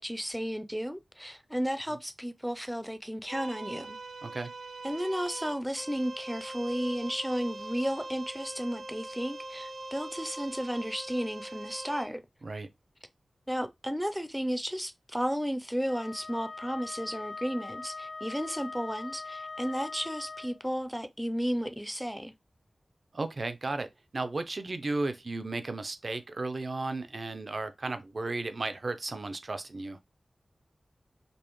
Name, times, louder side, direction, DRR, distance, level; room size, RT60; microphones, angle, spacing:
voice 1, 0.0-4.0 4.8-12.2 13.5-22.3, equal, ahead, 0.4 m, -33 dB
sound 1, 3.3-12.1, right 2 dB, 75° right, 0.9 m, -42 dB
Wind instrument woodwind instrument, 15.9-20.6, left 3 dB, 80° left, 0.7 m, -41 dB
voice 2, 23.1-23.9 24.1-30.0, right 2 dB, 55° right, 0.5 m, -34 dB
5.2 x 2.0 x 3.0 m
wide cardioid pair, 70°, 0 cm